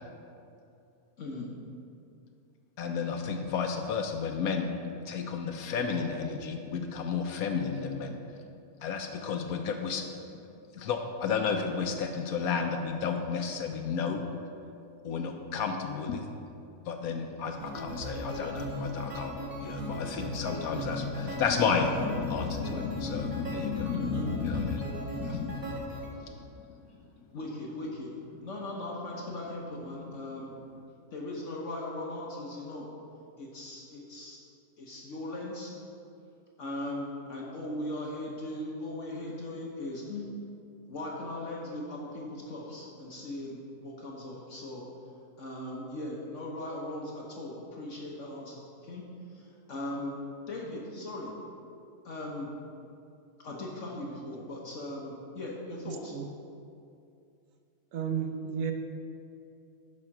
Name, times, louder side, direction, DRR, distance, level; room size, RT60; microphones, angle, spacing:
voice 1, 1.2-1.5 23.9-24.2 27.3-28.1 28.4-30.5 31.1-32.8 33.4-34.4 34.8-35.7 36.6-40.3 40.9-44.8 45.4-49.0 49.3-50.2 50.5-51.3 52.0-52.5 53.4-56.2, left 1 dB, 55° left, -3 dB, 1.2 m, -38 dB
voice 2, 2.8-4.7 5.1-8.2 8.8-10.1 10.7-14.2 15.0-16.3 16.9-24.8 25.1-25.8 26.2-26.4, left 5 dB, 75° left, 5 dB, 1.0 m, -32 dB
sound 1, 17.5-26.1, equal, 15° right, 1.0 m, -37 dB
voice 3, 57.9-58.7, right 7 dB, 65° right, 4 dB, 1.1 m, -32 dB
9.8 x 4.3 x 5.9 m, 2.5 s
omnidirectional pair, 1.6 m